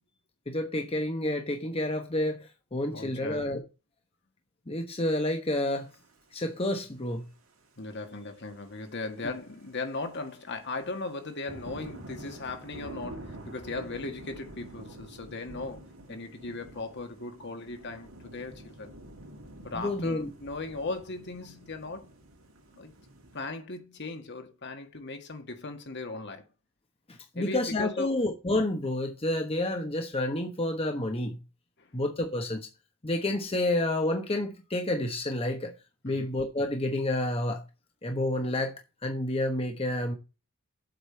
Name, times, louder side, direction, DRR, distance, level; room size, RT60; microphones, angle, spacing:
voice 1, 0.5-3.6 4.7-5.9 6.3-7.2 19.7-20.3 27.1-31.4 31.9-32.7 33.0-35.7 36.0-37.6 38.0-38.7 39.0-40.1, left 1 dB, 25° left, 1.1 m, -29 dB
voice 2, 2.9-3.5 7.8-18.9 19.6-22.1 22.8-22.9 23.3-26.4 27.4-28.1 31.8-31.9 36.1-36.3, left 3 dB, 55° left, 1.9 m, -38 dB
sound 1, 5.8-6.1 7.1-7.2 7.6-7.7 7.9-8.1 8.5-23.5, right 1 dB, 75° right, 2.6 m, -47 dB
8.0 x 5.2 x 7.6 m
head